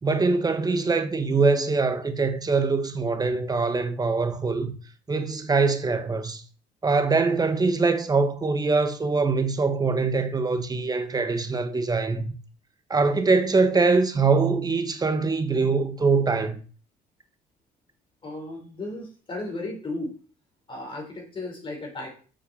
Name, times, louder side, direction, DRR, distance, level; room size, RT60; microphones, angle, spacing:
voice 1, 0.0-4.8 5.1-6.4 6.8-12.3 12.9-16.6, right 4 dB, 20° right, 1.5 m, -23 dB
voice 2, 18.2-20.2 20.7-22.1, left 2 dB, 30° left, 4.9 m, -35 dB
7.8 x 6.9 x 7.0 m
cardioid pair, 110°, 17 cm